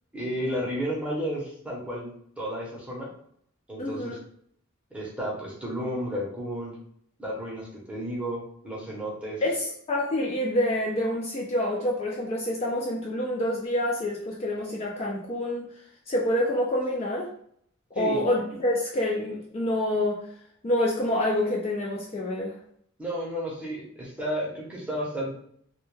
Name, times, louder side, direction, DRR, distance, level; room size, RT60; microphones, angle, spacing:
voice 1, 0.1-2.1 2.4-3.1 3.7-4.2 4.9-6.8 7.2-9.4 17.9-18.2 23.0-25.4, equal, 5° right, -5 dB, 0.7 m, -32 dB
voice 2, 3.8-4.2 9.4-15.6 16.1-17.3 18.0-20.2 20.6-22.6, left 1 dB, 30° left, -2 dB, 0.3 m, -27 dB
2.1 x 2.1 x 3.0 m, 0.65 s
head